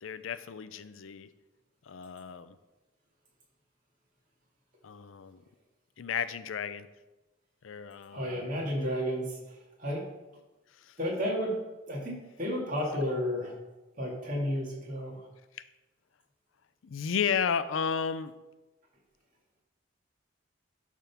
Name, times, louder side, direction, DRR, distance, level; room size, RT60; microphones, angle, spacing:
voice 1, 0.0-1.3 1.8-2.6 4.8-5.4 6.0-6.9 7.6-8.5 10.7-11.0 15.5-15.6 16.8-18.3, left 7 dB, 90° left, 13 dB, 0.5 m, -33 dB
voice 2, 8.1-9.4 9.8-10.0 11.0-11.5 11.9-13.5 14.0-15.2, equal, 45° right, -3 dB, 2.1 m, -32 dB
10.5 x 3.7 x 5.8 m, 1.1 s
head